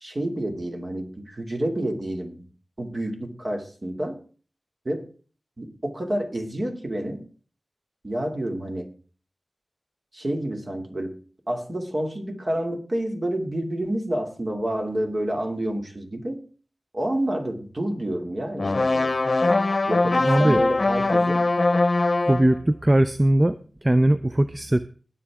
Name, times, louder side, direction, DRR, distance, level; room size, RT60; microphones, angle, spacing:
voice 1, 0.0-2.5 2.8-4.2 4.8-5.1 5.6-7.2 8.0-8.9 10.1-11.2 11.5-16.4 16.9-19.1 19.9-21.5, right 1 dB, 45° right, 3 dB, 2.6 m, -29 dB
sound 1, 18.6-22.5, left 2 dB, 60° left, 0.8 m, -21 dB
voice 2, 20.3-20.6 22.3-23.6 23.8-24.9, right 1 dB, 25° right, 12 dB, 0.5 m, -19 dB
20.0 x 6.9 x 3.6 m, 0.40 s
cardioid pair, 45°, 0 cm